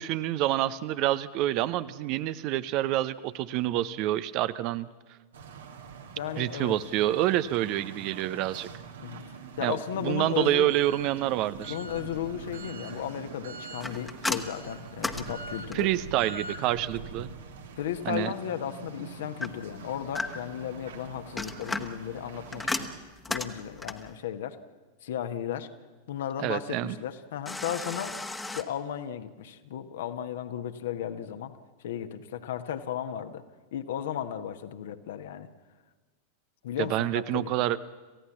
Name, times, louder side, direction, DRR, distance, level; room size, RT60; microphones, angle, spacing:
voice 1, 0.0-4.9 6.4-8.7 9.6-11.8 15.7-17.3 18.0-18.3 26.4-27.0 36.8-37.8, right 14 dB, 40° right, 15 dB, 0.8 m, -27 dB
sound 1, 5.3-23.0, right 4 dB, 65° right, 2.1 m, -44 dB
voice 2, 6.2-6.8 9.0-9.2 9.6-10.7 11.7-15.9 17.8-22.9 23.3-24.6 25.0-25.7 26.1-28.2 28.5-31.5 31.8-33.4 33.7-35.5 36.6-37.5, left 10 dB, 60° left, 9 dB, 1.4 m, -35 dB
sound 2, 13.8-16.1 19.4-20.6 21.2-24.1 27.5-28.6, left 2 dB, 10° left, 1.4 m, -35 dB
28.0 x 16.0 x 7.3 m, 1.3 s
figure-of-eight pair, 90°, 0 cm